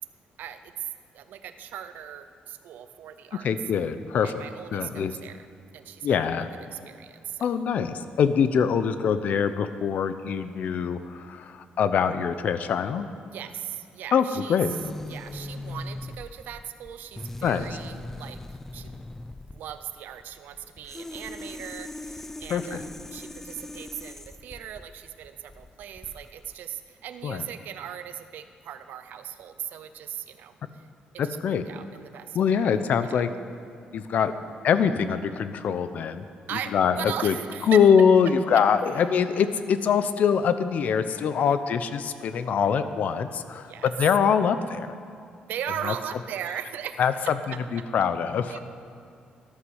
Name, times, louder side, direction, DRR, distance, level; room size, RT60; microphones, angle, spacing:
voice 1, 0.4-0.7 1.1-3.5 4.2-5.5 5.7-6.4 6.7-7.6 13.3-14.8 15.1-18.4 18.7-19.1 19.5-22.8 23.1-30.9 31.2-32.6 32.9-33.2 36.5-37.8 38.5-38.6 41.5-41.6 43.6-43.9 45.5-47.0 48.5-48.6, right 10 dB, 75° right, 10 dB, 0.6 m, -38 dB
voice 2, 3.4-4.4 4.7-5.1 6.0-6.5 7.4-13.1 14.1-14.7 17.4-17.7 22.5-22.8 27.2-27.4 31.2-31.6 32.3-33.3 33.9-34.3 34.6-36.2 36.5-37.3 37.7-45.0 45.8-45.9 47.0-47.1 47.5-48.6, left 7 dB, 60° left, 11 dB, 0.8 m, -24 dB
sound 1, 14.7-26.5, left 2 dB, 10° left, 0.4 m, -40 dB
13.0 x 11.5 x 6.5 m, 2.3 s
cardioid pair, 145°, 3 cm